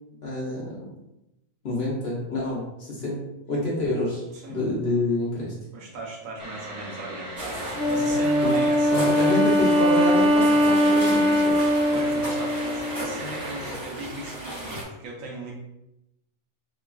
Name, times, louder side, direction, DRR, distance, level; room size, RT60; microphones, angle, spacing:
voice 1, 0.2-0.9 1.6-3.2 3.5-4.2 4.5-5.5 8.4-8.5 8.9-11.6, left 1 dB, 55° left, -5 dB, 0.9 m, -27 dB
voice 2, 5.7-9.5 11.9-15.5, right 2 dB, 70° right, -1 dB, 1.0 m, -37 dB
sound 1, 6.4-13.7, equal, 55° right, 0.3 m, -38 dB
sound 2, 7.4-14.8, right 1 dB, 20° right, 1.3 m, -36 dB
Wind instrument woodwind instrument, 7.8-13.2, equal, 80° left, 1.0 m, -21 dB
3.0 x 2.2 x 2.3 m, 0.90 s
omnidirectional pair, 1.5 m